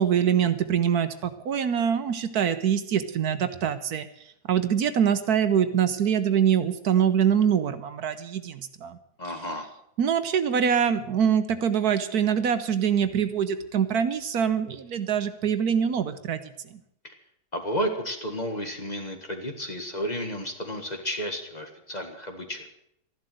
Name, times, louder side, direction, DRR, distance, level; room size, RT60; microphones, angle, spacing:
voice 1, 0.0-4.1 4.5-9.0 10.0-16.8, right 8 dB, 70° right, 11 dB, 1.4 m, -24 dB
voice 2, 9.2-9.7 17.0-17.1 17.5-22.6, equal, 25° left, 5 dB, 1.8 m, -32 dB
13.5 x 11.5 x 7.7 m, 0.74 s
omnidirectional pair, 1.8 m